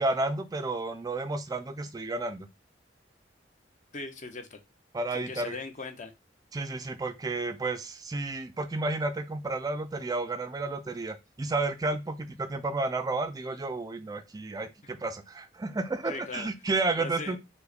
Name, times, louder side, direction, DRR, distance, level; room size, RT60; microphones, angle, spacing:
voice 1, 0.0-2.5 4.9-5.5 6.5-17.4, right 2 dB, 20° right, 0.3 m, -31 dB
voice 2, 3.9-4.6 5.1-6.1 14.8-14.9 16.1-16.5 17.0-17.4, left 3 dB, 45° left, 0.7 m, -39 dB
5.5 x 2.1 x 4.0 m
head